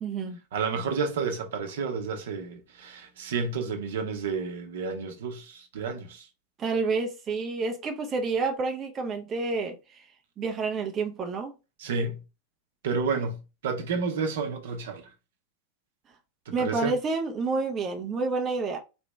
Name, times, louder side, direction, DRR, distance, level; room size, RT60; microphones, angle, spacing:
voice 1, 0.0-0.4 6.6-10.0 10.4-11.5 16.5-18.8, right 4 dB, 25° right, 0.7 m, -29 dB
voice 2, 0.5-6.3 11.8-12.2 12.8-15.1 16.5-17.0, right 5 dB, 60° right, 0.9 m, -31 dB
4.3 x 3.0 x 3.4 m
figure-of-eight pair, 90°, 0 cm